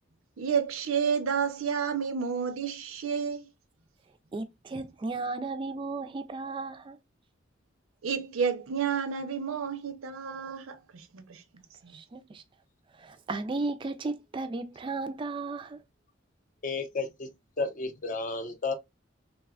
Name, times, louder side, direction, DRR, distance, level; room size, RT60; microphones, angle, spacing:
voice 1, 0.4-3.5 8.0-11.4 11.8-12.0, right 6 dB, 90° right, 0.5 m, -30 dB
voice 2, 4.3-7.0 11.9-12.4 13.0-15.8, right 3 dB, 25° right, 0.3 m, -35 dB
voice 3, 16.6-17.3 17.6-18.7, left 3 dB, 40° left, 0.5 m, -32 dB
3.2 x 2.1 x 2.3 m
head